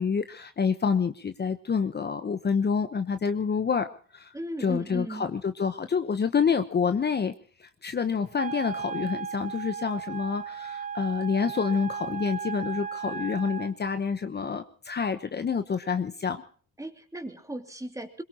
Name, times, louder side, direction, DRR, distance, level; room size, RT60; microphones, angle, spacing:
voice 1, 0.0-4.3 4.6-7.3 7.6-16.4, left 6 dB, 35° left, 9 dB, 1.0 m, -28 dB
voice 2, 4.3-5.3 16.8-18.2, right 1 dB, 10° right, 5 dB, 2.7 m, -36 dB
Wind instrument woodwind instrument, 8.3-13.7, right 7 dB, 25° right, 0.8 m, -36 dB
22.0 x 22.0 x 3.0 m, 0.42 s
cardioid pair, 90°, 30 cm